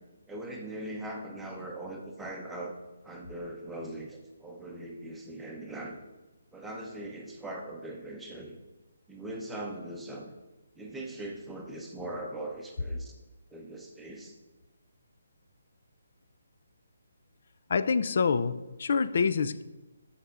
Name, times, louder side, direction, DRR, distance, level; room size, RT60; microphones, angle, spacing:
voice 1, 0.3-2.7 3.0-6.0 6.5-8.6 9.1-10.3 10.8-13.1 13.5-14.3, right 1 dB, 5° right, -1 dB, 0.8 m, -40 dB
voice 2, 17.7-19.6, left 5 dB, 45° left, 14 dB, 0.5 m, -26 dB
13.0 x 5.5 x 3.7 m, 1.1 s
hypercardioid pair, 175°, 0 cm